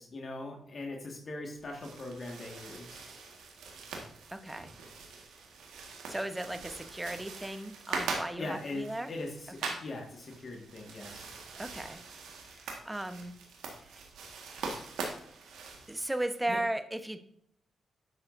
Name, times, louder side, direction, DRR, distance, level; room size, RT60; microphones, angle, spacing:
voice 1, 0.0-3.1 8.4-11.4 16.5-16.6, left 2 dB, 50° left, 1 dB, 1.8 m, -41 dB
sound 1, 1.6-16.4, right 4 dB, 75° right, 1.7 m, -43 dB
voice 2, 4.3-4.7 6.1-9.1 9.6-9.8 11.6-12.0 12.5-13.4 13.8-14.0 15.9-17.2, right 1 dB, 15° right, 9 dB, 1.0 m, -36 dB
10.5 x 7.5 x 2.7 m, 0.69 s
hypercardioid pair, 40°, 0 cm